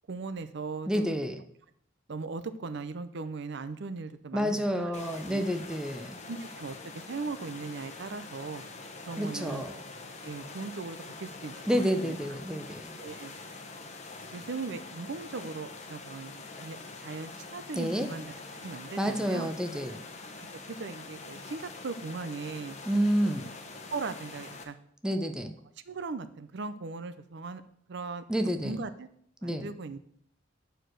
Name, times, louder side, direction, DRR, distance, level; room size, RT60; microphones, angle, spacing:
voice 1, 0.1-1.2 2.1-5.0 5.3-5.5 6.3-8.6 9.1-9.6 10.2-12.2 12.9-13.3 14.3-18.3 18.6-19.5 20.4-20.5 20.8-22.8 23.9-24.8 25.9-27.6 27.9-28.2 28.6-29.1 29.4-30.0, right 4 dB, 60° right, 12 dB, 0.6 m, -38 dB
voice 2, 0.9-1.4 4.3-6.1 9.2-9.7 11.7-12.8 17.8-18.1 19.0-20.0 22.9-23.4 25.0-25.5 28.3-28.7 29.4-29.7, equal, 5° right, 6 dB, 0.7 m, -29 dB
sound 1, 4.9-24.6, left 3 dB, 35° left, 1.1 m, -45 dB
9.0 x 4.6 x 6.3 m, 0.67 s
head